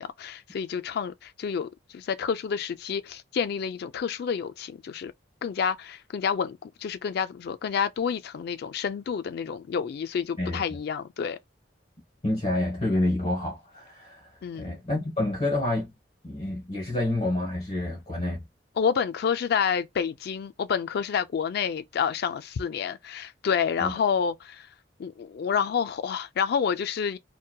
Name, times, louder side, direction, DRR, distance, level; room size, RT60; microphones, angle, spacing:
voice 1, 0.0-5.1 5.4-11.4 14.4-14.7 18.8-24.7 25.0-27.2, left 7 dB, 60° left, 0.3 m, -29 dB
voice 2, 12.2-15.9 16.2-18.4 23.8-23.9, left 1 dB, 35° left, 1.0 m, -28 dB
2.7 x 2.2 x 2.2 m
head